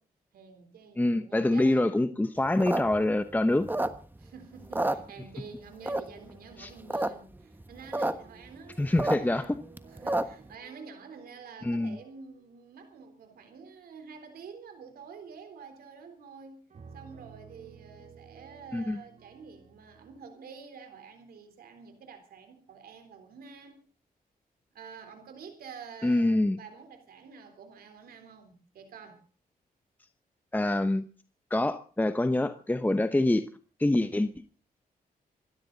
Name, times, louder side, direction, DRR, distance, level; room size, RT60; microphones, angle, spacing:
voice 1, 0.3-1.9 4.2-9.5 9.9-16.6 16.9-23.8 24.7-29.2, right 5 dB, 90° right, 6 dB, 3.7 m, -48 dB
voice 2, 1.0-3.7 6.6-6.7 8.8-9.6 11.6-12.0 18.7-19.0 26.0-26.6 30.5-31.0 31.5-33.5 33.8-34.4, left 1 dB, 10° left, 10 dB, 0.9 m, -25 dB
sound 1, 2.5-4.3 4.6-5.5 5.9-6.3 6.7-7.1 7.3-7.4 7.6-8.1 8.5-10.5, right 1 dB, 15° right, 1.3 m, -30 dB
sound 2, 8.2-12.7 13.4-13.8 16.7-20.2, right 6 dB, 50° right, 2.5 m, -55 dB
26.5 x 12.5 x 4.0 m, 0.37 s
cardioid pair, 95°, 15 cm